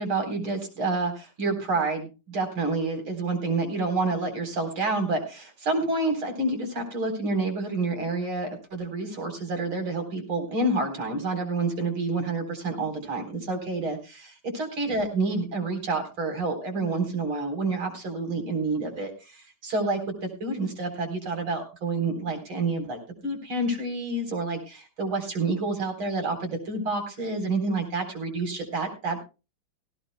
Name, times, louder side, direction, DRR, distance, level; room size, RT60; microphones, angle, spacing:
voice 1, 0.0-29.2, right 3 dB, 85° right, 5 dB, 4.8 m, -28 dB
18.0 x 16.5 x 2.2 m, 0.30 s
omnidirectional pair, 2.2 m